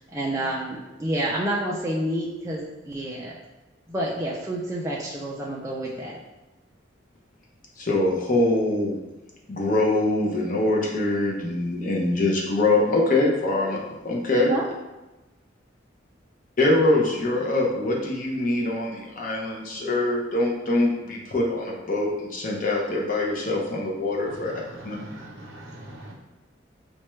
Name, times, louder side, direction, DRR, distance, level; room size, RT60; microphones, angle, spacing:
voice 1, 0.1-3.3 3.9-6.2 13.7-13.8 14.3-14.7, right 1 dB, 15° right, -5 dB, 0.3 m, -29 dB
voice 2, 7.8-8.9 9.5-13.8 14.0-14.5 16.6-24.5 24.8-25.0, left 2 dB, 40° left, -2 dB, 0.6 m, -23 dB
voice 3, 24.3-26.1, right 1 dB, 75° right, 0 dB, 0.7 m, -42 dB
4.3 x 2.2 x 3.1 m, 1.1 s
head